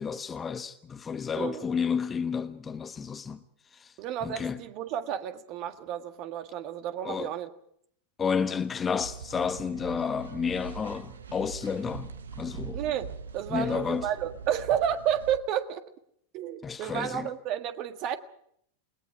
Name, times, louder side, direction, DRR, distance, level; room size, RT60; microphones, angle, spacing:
voice 1, 0.0-3.4 3.7-3.9 4.2-4.6 7.0-7.3 8.2-12.8 13.5-14.1 16.6-17.3, left 6 dB, 20° left, 1.1 m, -31 dB
voice 2, 1.4-1.7 4.0-7.5 12.7-15.8 16.3-18.2, right 10 dB, 40° right, 1.7 m, -31 dB
sound 1, 9.0-15.4, right 6 dB, 70° right, 1.3 m, -42 dB
28.5 x 20.5 x 4.8 m
figure-of-eight pair, 90°, 0 cm